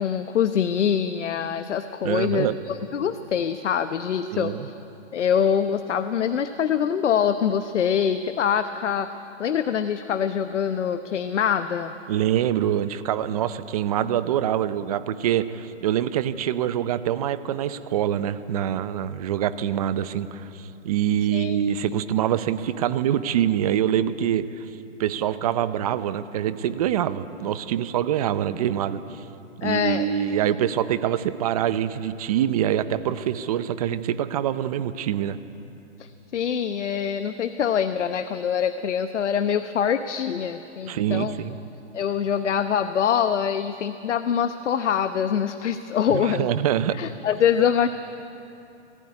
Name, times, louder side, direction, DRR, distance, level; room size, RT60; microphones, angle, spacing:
voice 1, 0.0-4.8 5.1-11.9 21.3-21.6 29.6-30.1 36.0-41.3 41.9-46.5 47.0-47.9, left 8 dB, 75° left, 10 dB, 1.0 m, -24 dB
voice 2, 2.0-2.6 4.3-4.7 12.1-24.6 25.0-29.2 29.6-35.4 40.9-41.6 46.1-47.0, right 10 dB, 30° right, 13 dB, 0.7 m, -25 dB
19.5 x 15.0 x 9.7 m, 2.9 s
hypercardioid pair, 155°, 36 cm